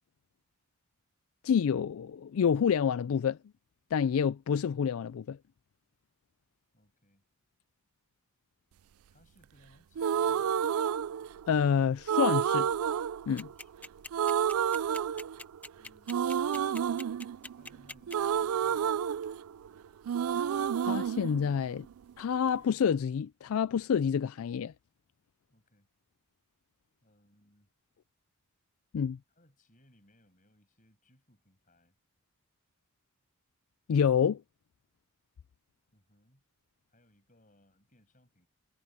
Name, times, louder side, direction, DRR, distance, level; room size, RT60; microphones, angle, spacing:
voice 1, 1.4-3.4 3.9-5.4 11.5-12.7 13.3-13.5 20.8-21.9 22.2-24.7 28.9-29.2 33.9-34.4, left 7 dB, 75° left, 0.4 m, -28 dB
voice 2, 6.7-7.2 9.1-10.7 13.3-14.3 15.8-16.3 17.5-19.0 25.5-25.9 27.0-27.7 29.3-32.0 35.9-36.4 36.9-38.5, left 1 dB, 35° left, 6.8 m, -65 dB
sound 1, 10.0-11.6 12.1-13.8 14.1-15.7 16.1-19.8 20.1-22.1, right 8 dB, 80° right, 0.4 m, -30 dB
sound 2, 13.4-18.4, left 2 dB, 5° left, 0.6 m, -43 dB
head